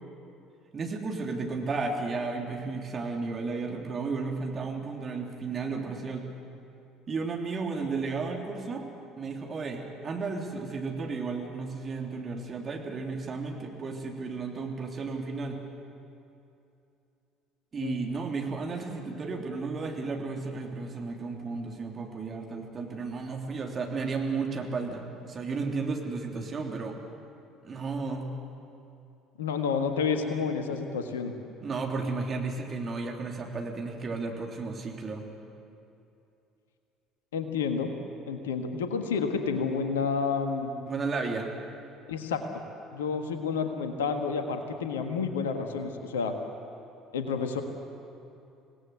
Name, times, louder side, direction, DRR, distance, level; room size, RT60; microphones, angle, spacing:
voice 1, 0.7-6.3 7.1-8.8 9.2-15.6 17.7-27.0 27.6-28.3 31.6-35.3 40.9-41.5, right 4 dB, 35° right, 1 dB, 3.3 m, -33 dB
voice 2, 29.4-31.3 37.3-37.9 38.3-40.7 42.1-42.6 42.9-46.3 47.1-47.6, left 5 dB, 70° left, 6 dB, 1.6 m, -30 dB
26.0 x 18.0 x 7.9 m, 2.7 s
figure-of-eight pair, 55°, 0 cm